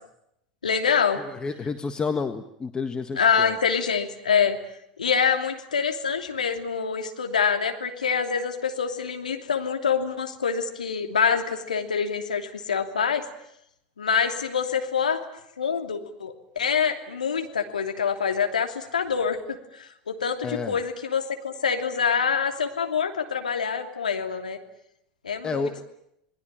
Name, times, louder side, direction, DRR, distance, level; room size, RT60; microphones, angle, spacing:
voice 1, 0.6-1.2 3.2-4.6 5.0-13.3 14.0-15.2 15.6-24.6 25.2-25.8, left 6 dB, 85° left, 5 dB, 2.9 m, -26 dB
voice 2, 1.2-3.6 20.4-20.8 25.4-25.8, left 4 dB, 20° left, 7 dB, 1.6 m, -30 dB
28.5 x 20.5 x 8.9 m, 0.79 s
hypercardioid pair, 85°, 4 cm